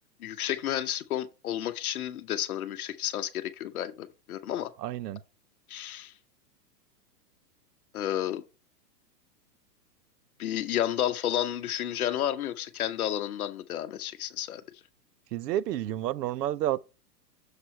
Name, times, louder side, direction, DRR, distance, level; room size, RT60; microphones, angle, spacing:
voice 1, 0.2-4.7 5.7-6.1 7.9-8.4 10.4-14.6, left 11 dB, 60° left, 0.8 m, -31 dB
voice 2, 4.8-5.2 15.3-16.8, right 13 dB, 75° right, 0.6 m, -30 dB
6.8 x 4.5 x 4.3 m
hypercardioid pair, 160°, 50 cm